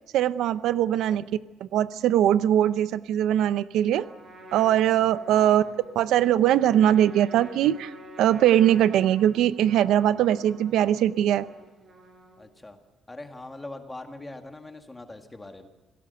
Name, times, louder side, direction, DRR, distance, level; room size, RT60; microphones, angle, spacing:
voice 1, 0.1-1.2 1.7-4.1 4.5-5.6 6.0-11.5, right 11 dB, 85° right, 14 dB, 0.7 m, -21 dB
Trumpet, 3.9-12.6, right 1 dB, 35° right, 5.1 m, -49 dB
voice 2, 5.3-5.7 12.4-12.8 13.1-15.7, left 2 dB, 10° left, 5 dB, 1.9 m, -42 dB
27.0 x 17.5 x 6.8 m, 1.3 s
cardioid pair, 170°, 0 cm